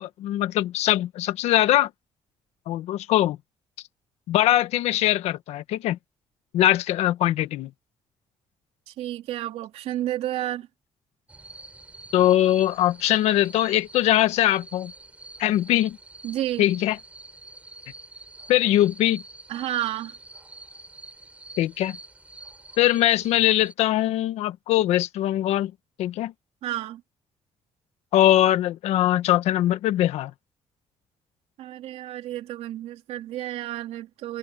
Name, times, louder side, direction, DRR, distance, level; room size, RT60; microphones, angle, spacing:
voice 1, 0.0-1.9 2.7-3.4 4.3-6.0 6.5-7.7 12.1-14.9 15.4-16.0 16.6-17.0 18.5-19.2 21.6-22.0 22.8-25.7 26.0-26.3 28.1-30.3, left 13 dB, 90° left, 1.4 m, -21 dB
voice 2, 8.9-10.7 16.2-16.6 19.5-20.1 26.6-27.0 31.6-34.4, right 13 dB, 80° right, 3.3 m, -31 dB
sound 1, 11.3-23.7, right 2 dB, 10° right, 6.0 m, -46 dB
cardioid pair, 135°, 11 cm